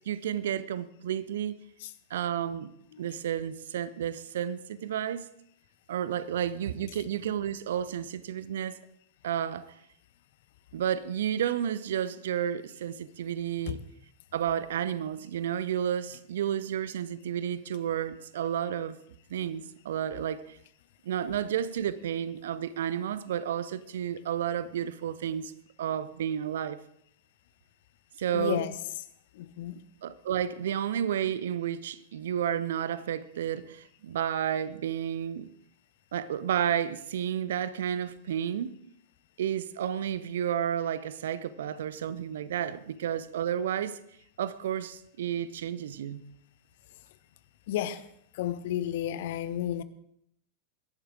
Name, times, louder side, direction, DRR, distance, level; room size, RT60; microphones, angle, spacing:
voice 1, 0.1-1.6 2.1-5.3 5.9-8.8 9.2-9.7 10.7-13.8 14.3-19.0 19.3-20.6 21.0-25.5 25.8-26.8 28.2-28.6 30.0-35.5 36.1-38.8 39.4-44.0 44.4-46.3, right 9 dB, 60° right, 0.7 m, -31 dB
voice 2, 28.3-28.8 29.3-29.8 47.7-48.1 48.3-49.8, left 11 dB, 55° left, 0.8 m, -32 dB
22.0 x 11.5 x 3.8 m
figure-of-eight pair, 90°, 0 cm